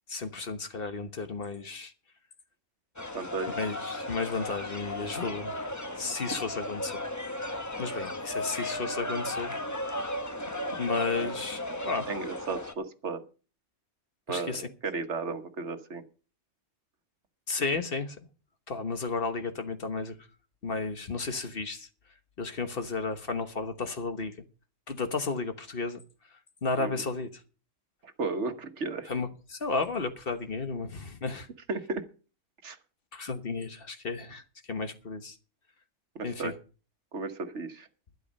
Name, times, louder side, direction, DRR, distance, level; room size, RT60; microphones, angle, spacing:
voice 1, 0.1-1.9 3.5-5.5 5.9-7.0 7.8-9.5 10.8-12.1 14.3-14.6 17.5-18.2 18.7-20.2 20.6-21.9 22.4-24.3 24.9-26.0 26.6-27.4 29.1-31.5 33.1-34.4 34.7-35.4 36.2-36.5, left 4 dB, 50° left, 1.4 m, -33 dB
sound 1, 3.0-12.7, left 1 dB, 15° left, 0.9 m, -35 dB
voice 2, 3.1-3.6 11.2-11.3 12.1-13.2 14.3-14.6 14.8-16.0 26.8-27.0 28.0-29.1 31.7-32.1 32.6-32.8 36.1-36.5 37.1-37.9, right 4 dB, 65° right, 1.5 m, -34 dB
12.0 x 11.0 x 5.3 m
omnidirectional pair, 1.3 m